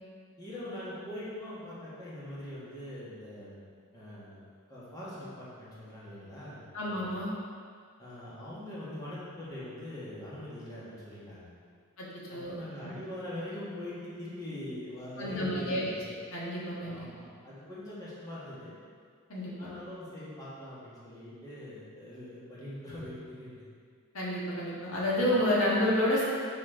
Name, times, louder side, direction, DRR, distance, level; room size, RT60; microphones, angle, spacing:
voice 1, 0.4-7.2 8.0-11.5 12.3-15.9 16.8-18.7 19.6-23.7, left 1 dB, 20° left, -10 dB, 1.8 m, -43 dB
voice 2, 6.7-7.3 12.0-12.5 12.8-12.9 15.2-15.9 16.3-17.1 19.3-19.7 24.1-26.3, left 1 dB, 80° left, -6 dB, 1.4 m, -30 dB
6.2 x 4.3 x 5.1 m, 2.1 s
head